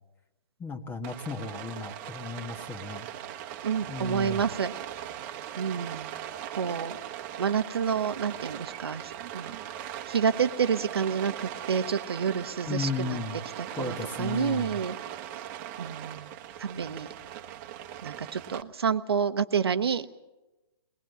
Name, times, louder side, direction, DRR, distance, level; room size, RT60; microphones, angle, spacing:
voice 1, 0.6-3.1 3.9-4.5 12.6-13.4 13.8-14.8 16.2-16.3, left 4 dB, 15° left, 6 dB, 1.5 m, -35 dB
Rain, 1.0-18.6, right 11 dB, 30° right, 1.2 m, -40 dB
voice 2, 3.6-4.7 5.6-6.1 6.5-7.0 7.4-9.6 10.1-13.2 13.8-14.9 15.8-16.3 16.6-17.1 18.0-20.1, right 7 dB, 80° right, 10 dB, 1.1 m, -29 dB
21.0 x 20.0 x 8.1 m, 1.1 s
hypercardioid pair, 145°, 13 cm